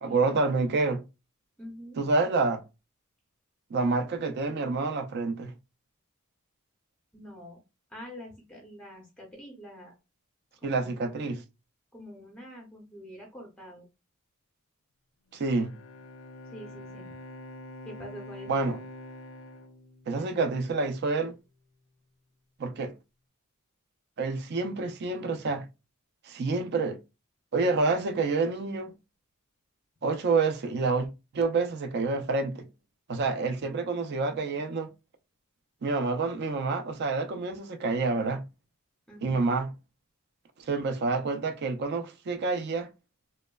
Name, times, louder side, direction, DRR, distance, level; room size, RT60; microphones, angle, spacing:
voice 1, 0.0-1.0 1.9-2.6 3.7-5.5 10.6-11.4 15.3-15.7 18.5-18.8 20.1-21.3 22.6-22.9 24.2-25.7 26.3-27.0 27.5-28.9 30.0-31.1 31.3-32.7 33.1-34.9 35.8-38.4 39.2-39.7 40.6-42.9, right 3 dB, 50° right, 0.4 m, -28 dB
voice 2, 1.6-2.0 7.1-7.6 7.9-9.9 10.6-10.9 11.9-13.8 16.5-17.1 17.9-18.5 20.2-20.4 39.1-39.4, equal, 5° left, 0.6 m, -46 dB
Bowed string instrument, 15.3-20.8, left 1 dB, 65° left, 0.4 m, -46 dB
3.0 x 2.1 x 2.2 m
head